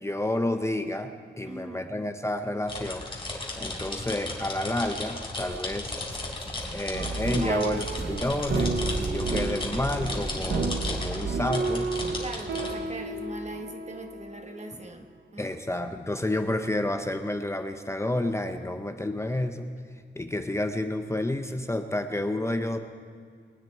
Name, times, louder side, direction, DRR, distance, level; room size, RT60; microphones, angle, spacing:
voice 1, 0.0-5.9 6.7-11.9 14.7-14.9 15.4-19.7 20.2-22.8, left 1 dB, 15° left, 6 dB, 0.7 m, -30 dB
voice 2, 1.5-1.9 7.4-7.7 12.2-15.1 15.3-15.5, right 2 dB, 40° right, 4 dB, 1.3 m, -40 dB
sound 1, 2.7-12.7, left 2 dB, 30° left, 4.0 m, -35 dB
sound 2, 5.2-11.2, right 1 dB, 15° right, 1.3 m, -39 dB
sound 3, 6.9-14.6 14.9-15.0, right 4 dB, 70° right, 1.0 m, -31 dB
23.0 x 9.4 x 4.6 m, 2.1 s
wide cardioid pair, 105°, 19 cm